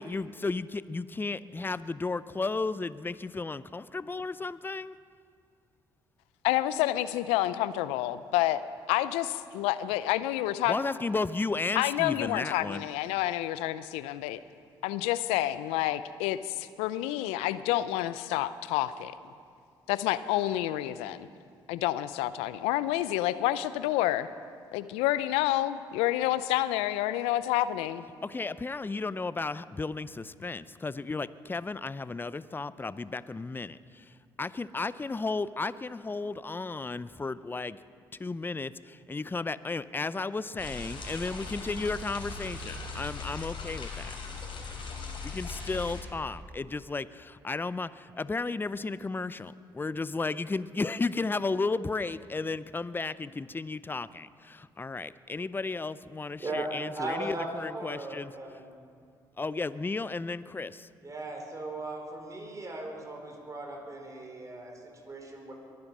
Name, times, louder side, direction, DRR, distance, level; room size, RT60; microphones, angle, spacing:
voice 1, 0.0-4.9 10.7-12.8 28.2-37.8 38.2-44.2 45.2-58.3 59.4-60.9, left 3 dB, 20° left, 16 dB, 0.6 m, -34 dB
voice 2, 6.4-8.6 8.9-10.7 11.8-14.4 14.8-19.1 19.9-21.3 21.7-24.3 24.7-28.0, left 14 dB, 85° left, 15 dB, 0.5 m, -29 dB
sound 1, 40.6-46.0, left 4 dB, 55° left, 3.9 m, -39 dB
voice 3, 56.4-58.7 61.0-65.5, right 2 dB, 35° right, 1 dB, 4.4 m, -38 dB
22.5 x 9.6 x 6.1 m, 2.2 s
hypercardioid pair, 55°, 10 cm